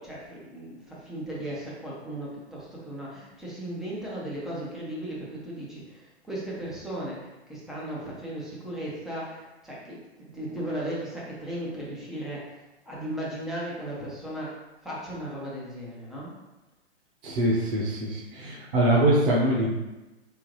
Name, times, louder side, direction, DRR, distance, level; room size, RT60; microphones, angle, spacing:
voice 1, 0.0-14.6 14.8-16.3, right 1 dB, ahead, -7 dB, 0.3 m, -36 dB
voice 2, 17.2-19.8, right 1 dB, 55° right, -5 dB, 1.1 m, -23 dB
4.2 x 3.8 x 3.0 m, 1.1 s
hypercardioid pair, 130°, 34 cm